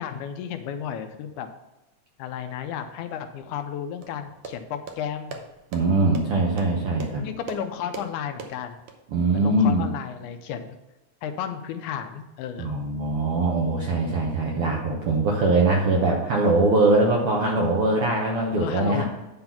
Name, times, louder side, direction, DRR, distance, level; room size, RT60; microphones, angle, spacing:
voice 1, 0.0-1.5 2.2-5.4 6.1-6.3 7.2-8.8 9.3-10.8 11.2-12.7 18.6-19.0, left 8 dB, 80° left, 8 dB, 1.9 m, -33 dB
sound 1, 4.0-9.0, right 4 dB, 85° right, 1.2 m, -41 dB
voice 2, 5.7-7.3 9.1-9.9 12.6-19.0, right 2 dB, 70° right, -1 dB, 1.4 m, -22 dB
9.5 x 3.9 x 5.8 m, 1.0 s
omnidirectional pair, 3.7 m